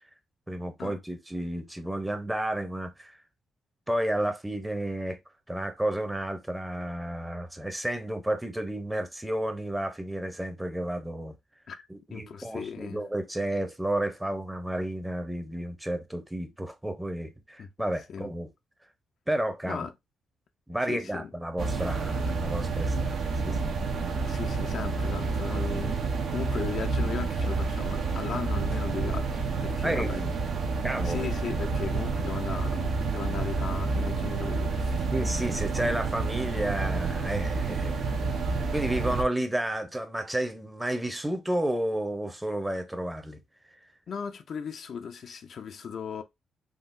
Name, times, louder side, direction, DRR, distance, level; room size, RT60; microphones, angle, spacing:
voice 1, 0.5-3.2 3.9-5.2 5.5-11.4 11.9-18.5 19.3-19.9 20.7-23.8 29.8-30.4 30.8-31.3 35.1-38.2 38.5-43.4, right 1 dB, 10° right, 0.7 m, -31 dB
voice 2, 12.1-13.0 17.6-17.7 18.1-18.3 19.7-19.9 20.9-21.3 24.2-26.0 26.3-30.2 31.0-35.1 44.1-46.2, left 6 dB, 60° left, 0.4 m, -37 dB
sound 1, 21.6-39.2, right 4 dB, 65° right, 0.7 m, -29 dB
3.7 x 2.0 x 2.5 m
cardioid pair, 80°, 0 cm